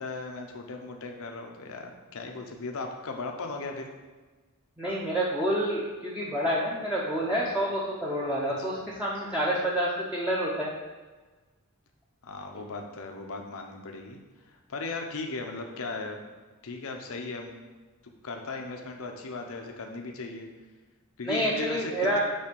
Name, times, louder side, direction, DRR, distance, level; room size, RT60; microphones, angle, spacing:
voice 1, 0.0-3.9 8.6-8.9 12.2-14.2 14.5-16.2 16.6-17.5 18.2-20.5 21.2-22.2, left 3 dB, 65° left, 3 dB, 0.7 m, -37 dB
voice 2, 4.8-10.7 21.2-22.2, right 1 dB, 5° right, -7 dB, 0.8 m, -28 dB
5.5 x 4.5 x 5.2 m, 1.3 s
head